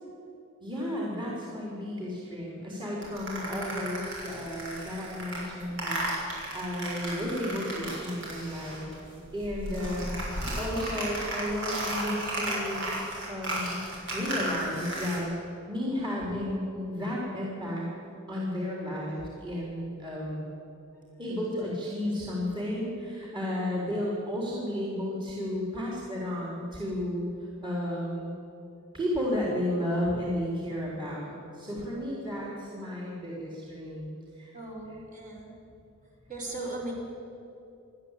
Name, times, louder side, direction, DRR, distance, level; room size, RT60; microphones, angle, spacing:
voice 1, 0.6-8.9 9.3-10.2 10.6-12.9 13.3-13.9 14.1-15.3 15.7-17.8 18.3-20.4 21.2-27.3 27.6-28.3 28.9-34.5, left 1 dB, 25° right, -5 dB, 3.8 m, -33 dB
sound 1, 3.0-9.0 9.3-15.2, right 1 dB, 60° right, 6.8 m, -34 dB
voice 2, 34.5-35.5 36.3-36.9, right 2 dB, 40° right, -2 dB, 4.9 m, -37 dB
29.0 x 11.5 x 8.4 m, 2.8 s
head